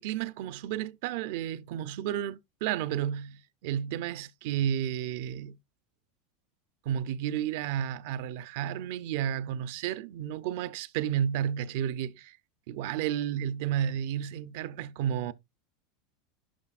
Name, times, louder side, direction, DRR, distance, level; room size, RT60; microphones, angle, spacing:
voice 1, 0.0-5.6 6.8-12.4 12.7-15.3, right 10 dB, 65° right, 0.5 m, -32 dB
11.0 x 4.1 x 2.4 m
supercardioid pair, 145°, 0 cm